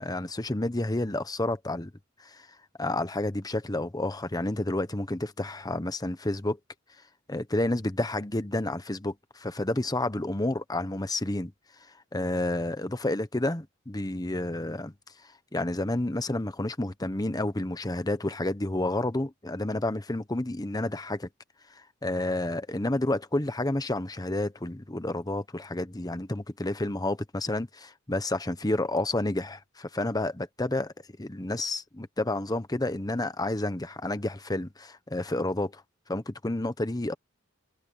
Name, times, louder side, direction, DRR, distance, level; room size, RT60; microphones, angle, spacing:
voice 1, 0.0-1.9 2.2-2.5 2.8-6.6 7.3-11.5 12.1-14.9 15.5-21.3 22.0-30.9 31.2-35.8 36.1-37.1, left 2 dB, 20° left, 1.0 m, -30 dB
head